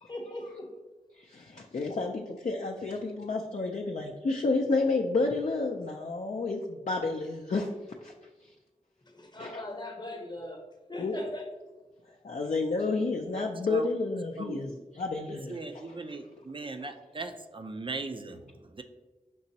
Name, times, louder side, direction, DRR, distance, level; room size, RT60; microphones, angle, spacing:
voice 1, 0.1-0.7 9.1-10.6 10.9-11.5, left 1 dB, 30° left, 2 dB, 0.8 m, -39 dB
voice 2, 1.2-7.7 8.0-8.1 9.4-9.6 11.0-11.2 12.2-15.8 16.3-16.4, left 3 dB, 55° left, 1 dB, 0.4 m, -30 dB
voice 3, 14.4-14.7 15.2-18.8, right 3 dB, 40° right, 7 dB, 0.4 m, -39 dB
5.3 x 2.9 x 2.7 m, 1.2 s
cardioid pair, 40°, 14 cm